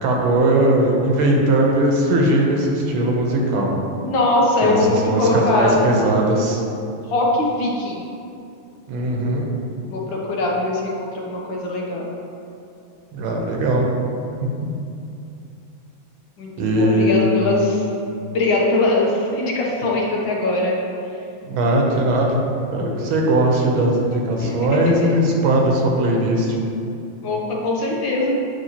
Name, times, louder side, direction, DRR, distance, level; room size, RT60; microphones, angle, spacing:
voice 1, 0.0-3.7 4.6-6.6 8.9-9.4 13.1-13.9 16.6-17.3 21.5-22.4 22.7-26.6, right 1 dB, 85° right, -1 dB, 1.7 m, -19 dB
voice 2, 4.0-5.8 7.1-8.0 9.9-12.1 16.4-16.5 16.8-17.8 18.3-20.8 24.4-24.5 25.0-25.1 27.2-28.3, left 2 dB, 70° left, -2 dB, 1.6 m, -21 dB
7.9 x 5.5 x 2.9 m, 2.6 s
omnidirectional pair, 2.2 m